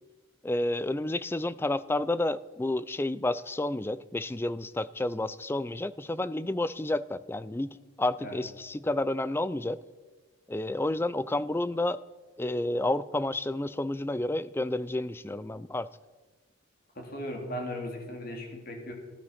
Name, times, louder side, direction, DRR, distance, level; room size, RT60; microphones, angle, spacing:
voice 1, 0.4-9.8 10.5-12.0 12.4-15.9, left 2 dB, 10° left, 17 dB, 0.3 m, -30 dB
voice 2, 16.9-18.9, left 1 dB, 45° left, 2 dB, 2.8 m, -37 dB
15.5 x 10.5 x 5.9 m, 1.3 s
head